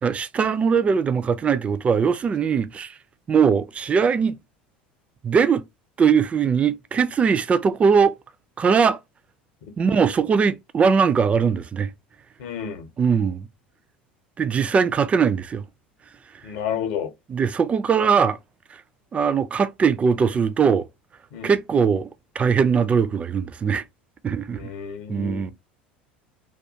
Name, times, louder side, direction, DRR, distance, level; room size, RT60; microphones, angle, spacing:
voice 1, 0.0-3.0 3.3-4.4 5.2-5.6 6.0-8.2 8.6-9.0 9.8-11.9 13.0-13.5 14.4-15.6 17.3-18.4 18.7-18.8 19.1-20.9 21.4-22.1 22.4-23.8 24.2-24.7 25.1-25.5, right 6 dB, 25° right, 0.3 m, -20 dB
voice 2, 12.4-12.9 16.4-17.1 21.3-21.5 24.5-25.5, left 8 dB, 55° left, 0.8 m, -31 dB
2.3 x 2.3 x 2.7 m
figure-of-eight pair, 70°, 5 cm